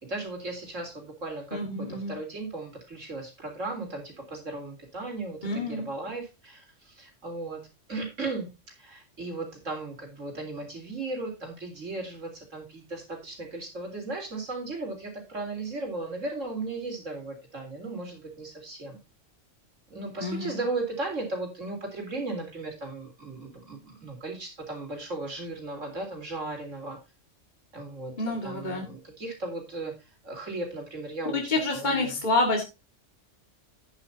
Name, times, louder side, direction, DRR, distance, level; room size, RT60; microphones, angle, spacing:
voice 1, 0.0-8.5 8.8-19.0 19.9-27.0 27.7-29.9 30.2-32.1, right 2 dB, 85° right, 2 dB, 4.1 m, -36 dB
voice 2, 1.5-2.1 5.4-5.9 20.2-20.6 28.2-28.9 31.3-32.6, left 2 dB, 35° left, 1 dB, 2.2 m, -28 dB
11.5 x 9.9 x 2.8 m, 0.26 s
omnidirectional pair, 1.3 m